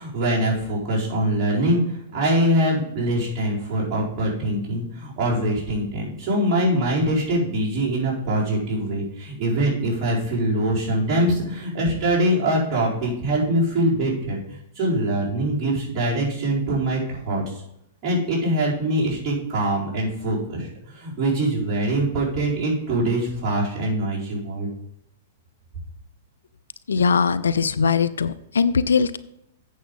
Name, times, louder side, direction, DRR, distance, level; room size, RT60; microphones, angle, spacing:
voice 1, 0.0-17.6 18.0-24.7, right 1 dB, 35° right, -6 dB, 4.5 m, -23 dB
voice 2, 26.9-29.2, left 5 dB, 85° left, 15 dB, 0.6 m, -20 dB
8.5 x 7.2 x 5.4 m, 0.76 s
hypercardioid pair, 120°, 0 cm